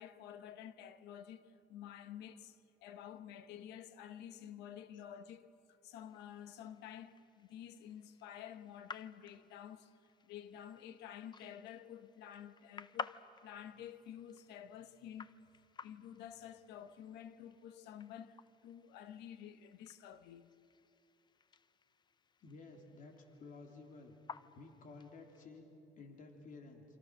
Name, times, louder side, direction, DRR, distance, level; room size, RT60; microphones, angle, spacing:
voice 1, 0.0-9.9 10.2-15.3 15.8-20.5, left 9 dB, 85° left, 1.1 m, -51 dB
sound 1, 5.9-25.5, left 5 dB, 25° left, 0.6 m, -54 dB
voice 2, 22.4-24.1 24.5-26.8, left 3 dB, 50° left, 3.4 m, -54 dB
28.0 x 26.5 x 6.4 m
cardioid pair, 110°, 17 cm